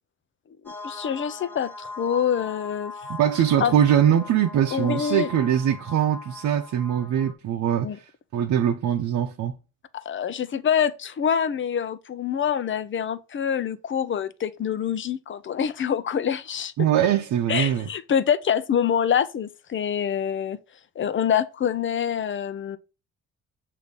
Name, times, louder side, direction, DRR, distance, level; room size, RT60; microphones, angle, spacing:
voice 1, 0.6-2.9 3.6-3.7 4.7-5.3 7.8-8.0 10.1-16.9 17.5-20.6 21.0-22.8, left 8 dB, 40° left, 0.6 m, -26 dB
sound 1, 0.7-7.3, left 3 dB, 5° left, 1.3 m, -40 dB
voice 2, 3.1-9.6 16.8-17.9, right 9 dB, 70° right, 0.8 m, -22 dB
6.6 x 2.8 x 5.2 m
cardioid pair, 90°, 30 cm